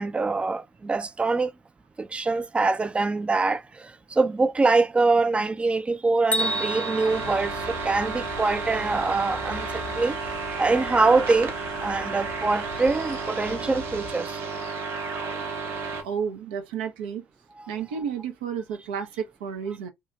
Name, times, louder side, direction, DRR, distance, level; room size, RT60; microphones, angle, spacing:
voice 1, 0.0-1.5 2.0-10.2 10.6-11.5 11.8-14.4 17.6-17.7, right 3 dB, 20° right, 0.3 m, -24 dB
Bell, 6.3-8.3, left 1 dB, 25° left, 0.6 m, -31 dB
sound 1, 6.4-16.0, right 4 dB, 45° right, 0.8 m, -32 dB
sound 2, 7.1-14.1, left 9 dB, 75° left, 0.4 m, -42 dB
voice 2, 16.0-17.2 17.7-19.9, right 7 dB, 75° right, 0.5 m, -31 dB
2.7 x 2.3 x 2.5 m
figure-of-eight pair, 50°, 5 cm